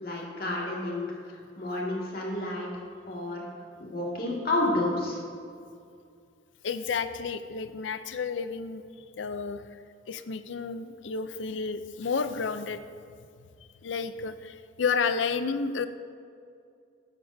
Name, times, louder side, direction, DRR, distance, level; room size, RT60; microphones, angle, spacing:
voice 1, 0.0-3.5 3.8-5.2, left 2 dB, 50° left, -3 dB, 2.0 m, -31 dB
voice 2, 6.6-8.8 9.2-9.6 10.1-12.8 13.8-15.9, left 5 dB, 85° left, 11 dB, 0.5 m, -31 dB
13.5 x 9.9 x 2.7 m, 2.4 s
head